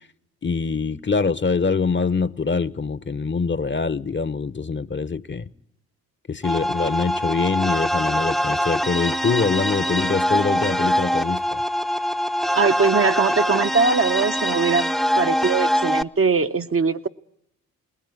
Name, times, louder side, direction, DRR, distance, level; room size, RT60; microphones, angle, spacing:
voice 1, 0.4-5.5 6.3-11.6, left 5 dB, 30° left, 0.9 m, -24 dB
sound 1, 6.4-16.0, equal, ahead, 0.8 m, -23 dB
voice 2, 12.5-17.1, right 4 dB, 35° right, 0.8 m, -21 dB
20.0 x 16.5 x 9.7 m
hypercardioid pair, 40°, 41 cm